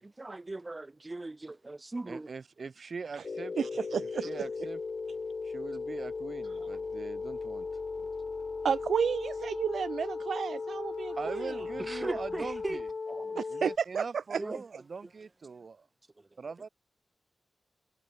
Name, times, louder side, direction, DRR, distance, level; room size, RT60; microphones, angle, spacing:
voice 1, 0.0-2.3 8.0-8.1 11.8-13.4 14.4-14.6, right 2 dB, 25° right, 1.6 m, -39 dB
voice 2, 2.1-3.5 4.0-4.8 5.4-7.7 11.1-12.9 13.5-15.9 16.4-16.7, right 5 dB, 55° right, 3.4 m, -41 dB
sound 1, 3.2-13.8, left 4 dB, 45° left, 1.3 m, -37 dB
voice 3, 3.6-4.3 8.6-11.5 13.4-14.0 14.3-14.4, right 6 dB, 85° right, 0.5 m, -31 dB
wide cardioid pair, 100°, 0 cm